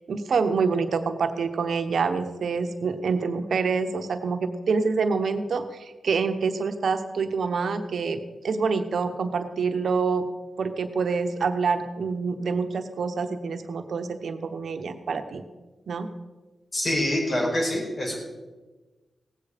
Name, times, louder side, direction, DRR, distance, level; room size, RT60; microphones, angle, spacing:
voice 1, 0.0-8.2 8.4-10.2 10.6-15.4 15.9-16.1, right 5 dB, 75° right, 8 dB, 1.0 m, -26 dB
voice 2, 16.7-18.1, left 1 dB, 45° left, -1 dB, 5.0 m, -25 dB
17.5 x 8.6 x 5.1 m, 1.2 s
cardioid pair, 60°, 0 cm